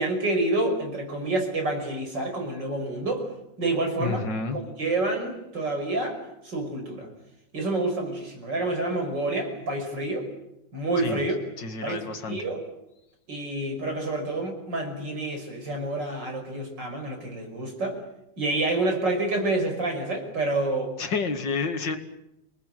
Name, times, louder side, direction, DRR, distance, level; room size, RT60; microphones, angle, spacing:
voice 1, 0.0-3.3 3.6-4.2 4.5-7.1 7.5-10.3 10.7-11.4 11.8-12.0 12.3-12.6 13.3-18.0 18.4-20.9, right 2 dB, 65° right, 3 dB, 6.4 m, -28 dB
voice 2, 4.0-4.6 11.0-11.2 11.6-12.4 21.0-22.0, left 4 dB, 65° left, 7 dB, 2.7 m, -29 dB
29.5 x 19.5 x 9.2 m, 0.86 s
omnidirectional pair, 2.1 m